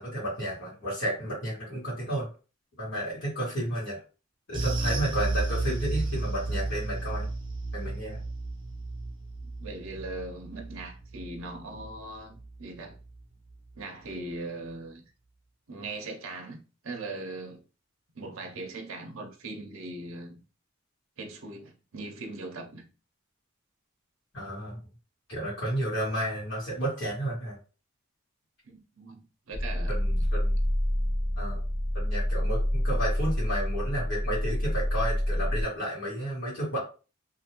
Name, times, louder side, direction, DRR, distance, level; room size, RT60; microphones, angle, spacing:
voice 1, 0.0-2.3 2.8-4.0 4.5-7.3 7.7-8.2 24.3-24.8 25.3-27.5 29.9-30.5 31.4-31.6 31.9-36.8, right 1 dB, 55° left, 1.6 m, -32 dB
sound 1, 4.5-13.2 13.5-13.7 14.1-14.2, right 2 dB, 25° right, 0.7 m, -33 dB
voice 2, 9.4-13.0 13.8-15.0 15.7-17.6 18.1-20.4 21.2-22.9 28.7-30.0, right 2 dB, 70° right, 0.6 m, -40 dB
sound 2, 29.5-35.6, equal, 40° left, 0.7 m, -27 dB
2.7 x 2.5 x 2.9 m
head